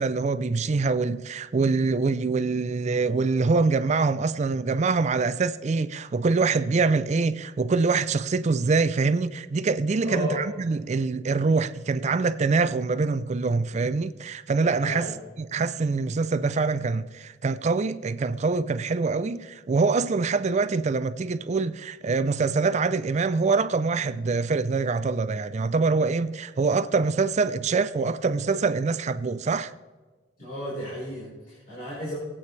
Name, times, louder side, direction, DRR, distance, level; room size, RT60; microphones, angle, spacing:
voice 1, 0.0-15.1 15.4-29.7, right 4 dB, 35° right, 0.4 m, -24 dB
voice 2, 10.0-10.4 14.8-15.1 30.4-32.1, equal, 45° left, 4.3 m, -33 dB
19.5 x 8.5 x 3.2 m
head